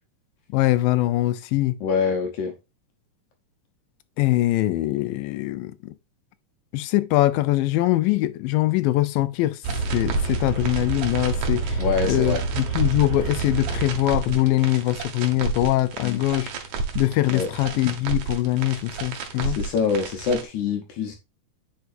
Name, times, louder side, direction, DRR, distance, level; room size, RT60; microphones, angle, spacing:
voice 1, 0.5-1.8 4.2-5.9 6.7-9.6 9.9-16.5 17.0-19.6, left 16 dB, 85° left, 2.3 m, -22 dB
voice 2, 1.8-2.5 11.8-12.4 16.0-16.2 17.3-17.5 19.4-21.2, left 5 dB, 70° left, 2.2 m, -25 dB
sound 1, 9.6-20.4, right 4 dB, 70° right, 2.4 m, -29 dB
9.5 x 4.6 x 2.5 m
omnidirectional pair, 3.9 m